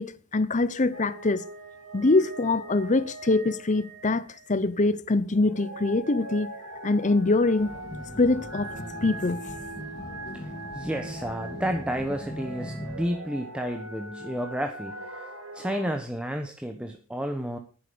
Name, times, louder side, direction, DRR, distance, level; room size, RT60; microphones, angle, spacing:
voice 1, 0.0-1.4 1.9-6.5 6.8-7.8 8.2-8.7 9.0-9.4, left 2 dB, 35° left, 0.8 m, -24 dB
sound 1, 0.9-4.7 5.3-15.9, right 1 dB, 90° right, 3.3 m, -41 dB
sound 2, 7.6-13.1, equal, 20° left, 3.4 m, -40 dB
voice 2, 10.3-15.2 15.5-17.6, equal, 5° right, 1.1 m, -31 dB
10.5 x 9.8 x 6.7 m
head